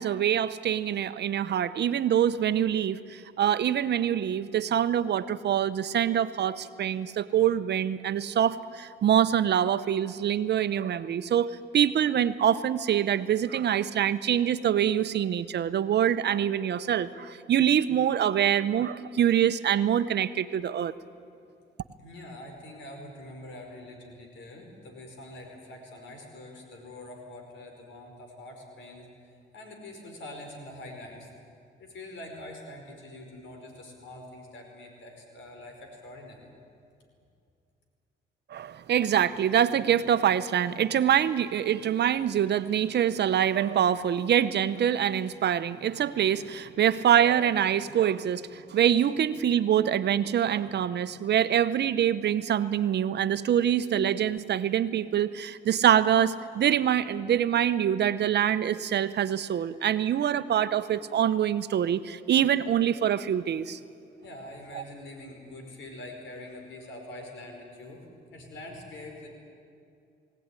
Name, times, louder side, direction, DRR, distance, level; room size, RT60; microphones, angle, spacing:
voice 1, 0.0-20.9 38.5-63.8 64.7-64.8, right 9 dB, 60° right, 13 dB, 0.8 m, -25 dB
voice 2, 22.0-29.1 29.5-31.3 31.8-36.5 64.2-69.3, left 1 dB, 70° left, 3 dB, 5.2 m, -44 dB
21.0 x 17.0 x 9.8 m, 2.4 s
cardioid pair, 90°, 20 cm